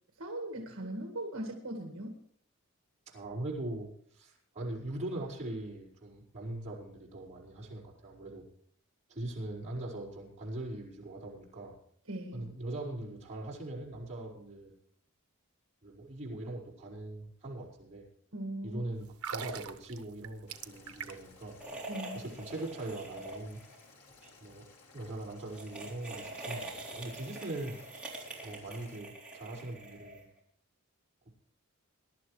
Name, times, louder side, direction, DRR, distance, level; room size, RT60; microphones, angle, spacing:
voice 1, 0.2-2.2 12.1-12.4 18.3-18.8 21.9-22.2, right 1 dB, 65° right, 2 dB, 1.9 m, -39 dB
voice 2, 3.1-8.4 9.1-11.8 12.3-14.7 15.8-18.1 18.6-21.6 22.1-23.6 24.4-27.8 28.0-30.2, right 1 dB, 30° right, -5 dB, 5.0 m, -41 dB
sound 1, 19.1-21.4 21.7-21.9, right 6 dB, 80° right, 1.0 m, -41 dB
Boiling, 20.5-29.0, left 3 dB, 80° left, 3.2 m, -59 dB
sound 2, 21.6-23.8 24.1-24.3 25.4-30.4, right 2 dB, 5° right, 3.6 m, -45 dB
22.0 x 11.5 x 3.3 m, 0.65 s
head